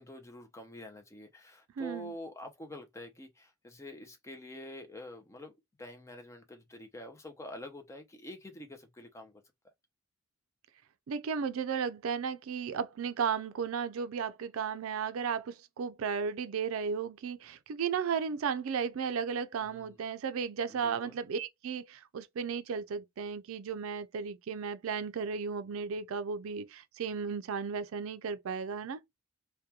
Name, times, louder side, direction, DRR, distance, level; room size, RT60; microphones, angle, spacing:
voice 1, 0.0-9.4 19.6-20.0 20.7-21.1, left 1 dB, 15° left, 0.5 m, -47 dB
voice 2, 1.8-2.1 11.1-29.0, right 6 dB, 80° right, 0.4 m, -34 dB
2.8 x 2.2 x 2.2 m
head